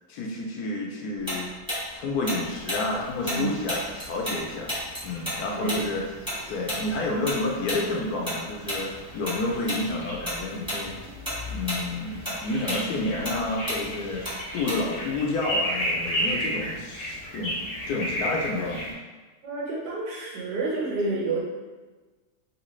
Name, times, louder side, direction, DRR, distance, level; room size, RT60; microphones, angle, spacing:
voice 1, 0.1-1.5 2.0-4.8 5.0-6.0 6.5-10.9 11.5-14.3 14.5-17.6 17.9-18.9 21.1-21.2, left 2 dB, 70° left, -1 dB, 1.0 m, -30 dB
Tick-tock, 1.3-4.4 4.7-9.4 9.7-9.9 10.2-10.8 11.1-15.1, equal, 5° right, 1.0 m, -32 dB
sound 1, 2.4-18.9, equal, 45° left, 0.8 m, -35 dB
voice 2, 3.2-3.7 5.5-5.9 19.4-21.4, right 3 dB, 75° right, -4 dB, 1.4 m, -30 dB
3.2 x 2.8 x 3.0 m, 1.3 s
omnidirectional pair, 1.8 m